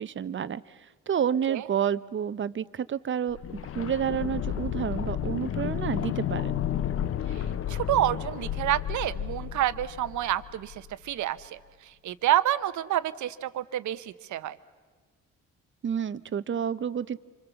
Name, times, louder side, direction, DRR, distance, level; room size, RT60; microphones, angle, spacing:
voice 1, 0.0-3.4 3.7-6.5 15.8-17.2, right 8 dB, 40° right, 15 dB, 0.7 m, -30 dB
sound 1, 3.3-11.1 11.4-11.5, left 10 dB, 45° left, 0.7 m, -32 dB
voice 2, 7.7-11.6 12.0-14.6, right 13 dB, 75° right, 13 dB, 0.9 m, -28 dB
26.0 x 26.0 x 7.0 m, 1.4 s
cardioid pair, 90°, 30 cm